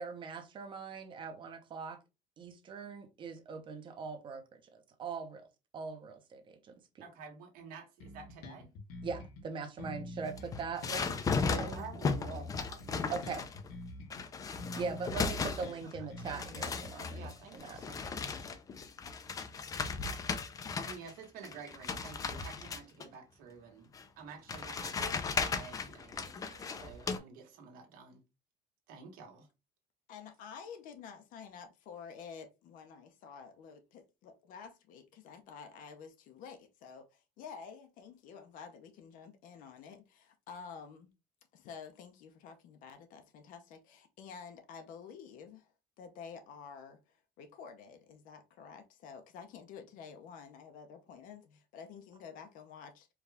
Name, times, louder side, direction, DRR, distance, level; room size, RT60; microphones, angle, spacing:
voice 1, 0.0-2.0 2.4-4.4 4.7-5.5 5.7-7.0 9.0-11.1 11.5-11.8 13.1-13.4 14.7-17.8, right 5 dB, 35° right, 0.8 m, -41 dB
voice 2, 7.0-8.7 11.4-13.2 16.0-16.1 17.1-18.5 20.8-23.9 24.2-28.2 28.9-29.5, right 5 dB, 75° right, 1.4 m, -50 dB
Bass guitar, 8.0-9.4 9.8-14.2 14.6-17.6, left 2 dB, 80° left, 1.1 m, -47 dB
sound 1, 10.3-13.7 14.1-15.9 16.2-21.1 21.4-23.1 23.9-24.0 24.5-27.2, left 5 dB, 25° left, 0.4 m, -36 dB
voice 3, 30.1-41.1 41.5-45.7 46.0-53.1, left 6 dB, 60° left, 0.6 m, -50 dB
4.7 x 2.3 x 3.4 m
cardioid pair, 160°, 15 cm